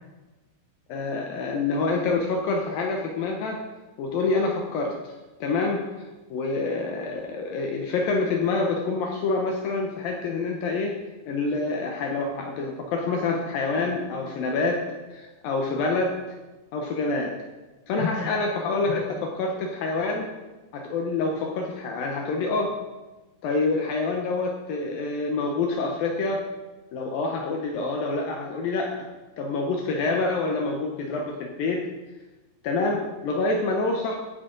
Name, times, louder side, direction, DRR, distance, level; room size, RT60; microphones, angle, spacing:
voice 1, 0.9-3.6 4.0-5.1 5.4-5.8 6.3-10.9 11.3-14.8 15.1-16.2 16.7-17.3 17.9-20.3 20.7-22.7 23.4-26.5 26.9-28.9 29.4-31.9 32.6-34.2, left 3 dB, 75° left, 1 dB, 2.1 m, -27 dB
15.5 x 8.2 x 3.9 m, 1.2 s
omnidirectional pair, 5.3 m